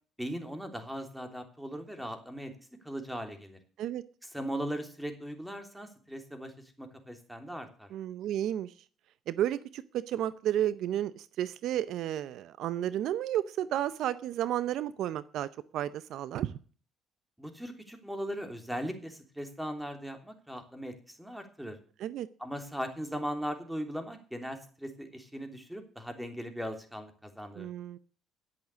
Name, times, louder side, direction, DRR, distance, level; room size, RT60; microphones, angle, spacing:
voice 1, 0.2-2.5 2.8-3.6 4.3-6.5 6.8-7.9 17.4-21.8 22.4-27.7, equal, 5° right, 6 dB, 3.2 m, -39 dB
voice 2, 7.9-8.7 9.3-16.6 22.0-22.3 27.5-28.0, right 11 dB, 70° right, 16 dB, 0.6 m, -32 dB
10.5 x 8.3 x 8.3 m, 0.41 s
supercardioid pair, 85°, 0 cm